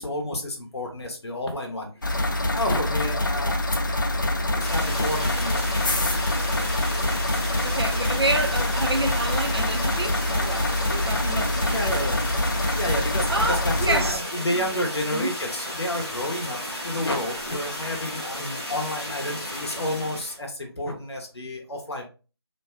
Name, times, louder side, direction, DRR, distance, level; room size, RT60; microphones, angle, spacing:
voice 1, 0.0-3.6 4.5-6.0 7.1-7.2 10.8-11.0 11.7-12.3 12.7-22.1, left 1 dB, 75° left, 0.7 m, -30 dB
sound 1, 2.0-14.1, left 1 dB, 50° left, 0.4 m, -25 dB
sound 2, 4.6-20.4, left 1 dB, 5° left, 0.7 m, -34 dB
voice 2, 7.6-12.1 12.9-14.2 14.5-14.6 15.1-15.3, right 2 dB, 70° right, 0.6 m, -29 dB
2.6 x 2.2 x 2.2 m
figure-of-eight pair, 170°, 14 cm